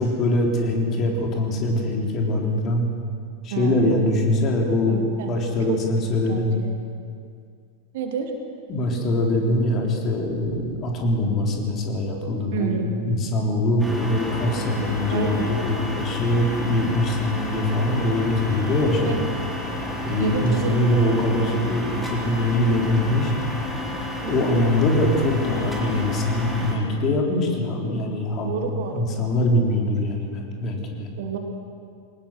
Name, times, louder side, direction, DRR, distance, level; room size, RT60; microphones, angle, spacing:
voice 1, 0.0-2.8 3.4-5.0 5.3-6.5 8.7-19.3 20.0-23.3 24.3-28.5 28.9-31.1, left 1 dB, 30° left, 1 dB, 3.9 m, -23 dB
voice 2, 3.5-3.9 4.9-5.3 5.7-5.8 6.3-6.7 7.9-8.3 12.5-13.2 15.1-15.5 19.0-19.3 20.2-20.7 24.2-24.5 28.4-29.3 31.2-31.4, right 7 dB, 55° right, 4 dB, 2.6 m, -29 dB
sound 1, 13.8-26.8, left 2 dB, ahead, 4.0 m, -31 dB
22.5 x 19.0 x 6.5 m, 2.2 s
figure-of-eight pair, 90°, 0 cm